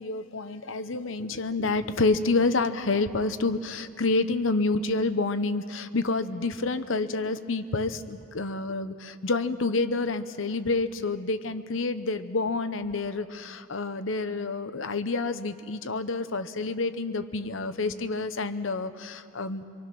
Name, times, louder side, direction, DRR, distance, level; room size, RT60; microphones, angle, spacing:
voice 1, 0.0-19.6, left 3 dB, 80° left, 10 dB, 1.0 m, -28 dB
25.5 x 24.0 x 6.1 m, 2.3 s
head